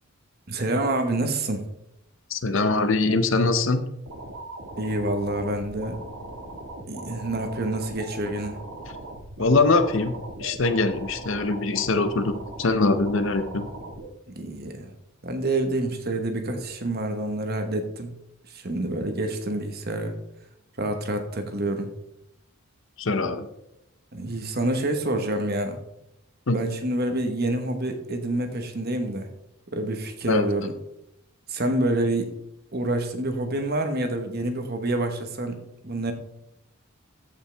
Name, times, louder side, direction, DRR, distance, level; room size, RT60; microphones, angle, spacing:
voice 1, 0.5-1.6 4.8-6.0 6.9-8.6 14.3-14.9 15.2-18.1 18.5-20.1 20.8-21.9 24.1-25.8 26.5-29.3 29.7-30.7 31.5-32.3 32.7-35.6 35.8-36.1, right 1 dB, 45° right, 6 dB, 1.1 m, -27 dB
voice 2, 2.3-3.8 9.4-13.7 23.0-23.5 26.5-26.6 30.3-30.4, left 3 dB, 60° left, 9 dB, 0.7 m, -23 dB
sound 1, 4.1-14.1, right 2 dB, 85° right, 1.8 m, -39 dB
14.0 x 5.6 x 3.4 m, 0.82 s
head